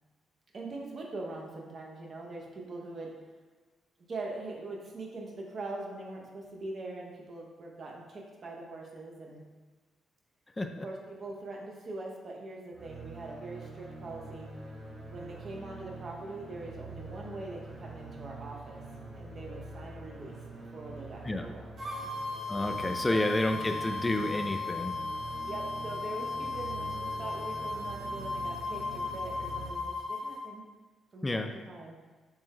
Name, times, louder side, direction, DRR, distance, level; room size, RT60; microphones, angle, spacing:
voice 1, 0.5-3.1 4.1-9.5 10.8-14.5 15.1-18.8 19.1-20.4 20.7-22.1 23.1-23.3 25.4-30.6 31.1-32.0, right 2 dB, 50° right, -1 dB, 0.8 m, -42 dB
sound 1, 12.7-29.7, right 2 dB, 35° right, 1.1 m, -45 dB
sound 2, 21.8-30.4, left 3 dB, 70° right, 1.5 m, -36 dB
voice 2, 22.5-24.9 31.2-31.5, left 1 dB, 25° left, 5 dB, 0.3 m, -30 dB
3.4 x 3.1 x 3.6 m, 1.3 s
supercardioid pair, 55°, 0 cm